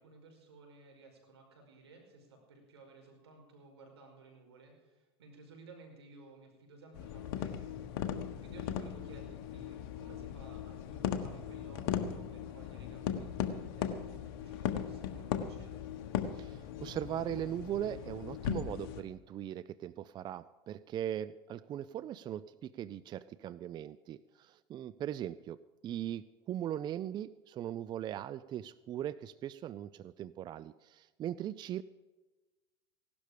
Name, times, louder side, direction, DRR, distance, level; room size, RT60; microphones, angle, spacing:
voice 1, 0.0-15.9, right 3 dB, 90° right, 3 dB, 5.2 m, -57 dB
sound 1, 6.9-19.0, left 9 dB, 65° left, 1.5 m, -38 dB
voice 2, 16.4-31.8, right 11 dB, 35° right, 17 dB, 0.5 m, -39 dB
17.0 x 12.0 x 5.1 m, 1.2 s
hypercardioid pair, 105°, 13 cm